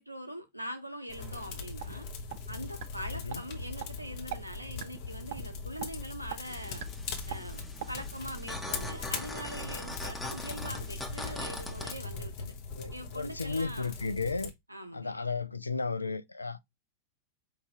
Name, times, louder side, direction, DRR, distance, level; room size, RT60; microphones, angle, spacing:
voice 1, 0.0-2.1 2.5-6.9 7.3-12.5 12.9-13.9 14.7-15.2, equal, 90° right, 0.7 m, -43 dB
sound 1, 1.1-14.5, left 4 dB, 45° left, 0.9 m, -40 dB
sound 2, 1.2-1.9 2.3-2.4 2.8-2.9 3.3-3.4 3.8-3.9 4.3-4.4 4.8-5.0 5.3-5.4 5.8-5.9 6.3-6.4 6.8-6.9 7.3-7.4 7.8-7.9, right 11 dB, 55° right, 0.5 m, -39 dB
voice 2, 3.1-3.4 12.7-14.5 14.9-16.6, left 4 dB, 80° left, 0.3 m, -34 dB
sound 3, 6.5-11.9, left 1 dB, 5° left, 0.9 m, -42 dB
4.8 x 2.7 x 3.2 m
figure-of-eight pair, 90°, 0 cm